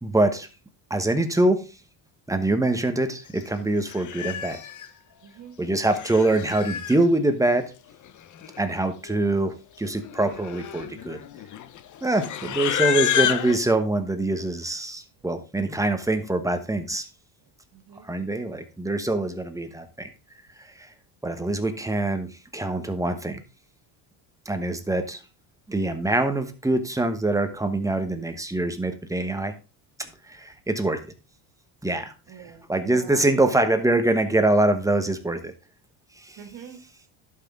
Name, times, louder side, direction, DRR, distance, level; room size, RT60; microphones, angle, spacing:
voice 1, 0.0-0.5 0.9-1.6 2.3-4.6 5.6-7.7 8.6-11.2 12.0-17.1 18.0-20.1 20.6-20.9 21.2-23.4 24.4-25.2 25.7-29.5 30.0-31.0 31.8-32.1 32.7-35.5 36.2-36.4, right 2 dB, 5° right, 7 dB, 1.1 m, -24 dB
Livestock farm animals working animals, 3.4-3.5 3.9-4.9 5.7-7.0 8.1-8.2 8.4-8.8 9.1-9.3 10.0-13.6, left 10 dB, 40° left, 0.7 m, -29 dB
voice 2, 5.2-5.6 17.7-18.1 32.3-33.3 36.4-36.8, right 8 dB, 60° right, 6 dB, 2.3 m, -43 dB
11.5 x 5.9 x 3.7 m, 0.31 s
cardioid pair, 125°, 50 cm